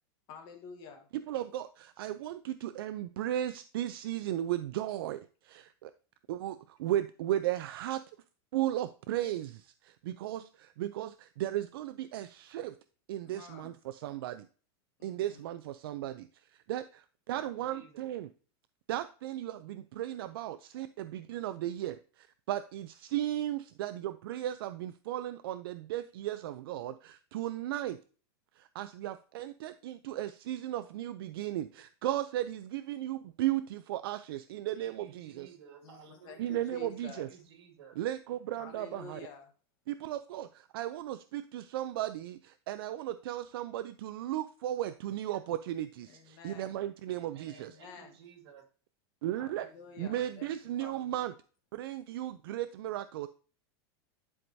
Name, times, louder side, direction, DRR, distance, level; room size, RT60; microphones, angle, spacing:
voice 1, 0.3-1.1 13.3-13.7 15.0-15.4 35.8-37.3 38.6-39.5 46.1-46.7 47.5-48.1 49.4-50.5 50.8-51.1, left 6 dB, 35° left, 4 dB, 1.2 m, -50 dB
voice 2, 1.1-5.9 6.3-8.0 8.5-12.8 13.1-14.5 15.0-18.3 18.9-28.0 28.6-35.5 36.4-37.3 38.0-39.2 39.9-47.7 49.2-49.7 50.0-51.3 51.7-53.3, right 13 dB, 60° right, 12 dB, 0.4 m, -35 dB
voice 3, 17.3-18.1 34.7-36.6 37.0-38.0 47.1-48.7, right 8 dB, 75° right, 5 dB, 1.8 m, -55 dB
11.0 x 4.6 x 2.6 m, 0.39 s
supercardioid pair, 175°, 14 cm